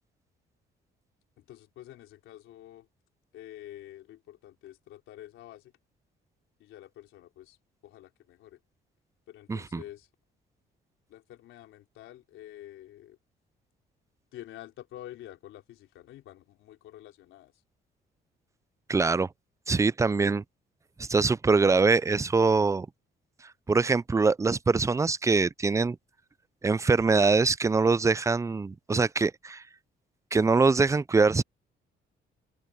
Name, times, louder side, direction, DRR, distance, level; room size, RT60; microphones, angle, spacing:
voice 1, 1.4-2.9 3.3-5.7 6.6-7.6 7.8-8.6 9.3-10.1 11.1-13.2 14.3-17.5, left 13 dB, 85° left, 3.5 m, -48 dB
voice 2, 9.5-9.8 18.9-19.3 19.7-20.4 21.0-22.9 23.7-26.0 26.6-29.6 30.3-31.4, right 4 dB, 15° right, 0.4 m, -23 dB
cardioid pair, 90°, 20 cm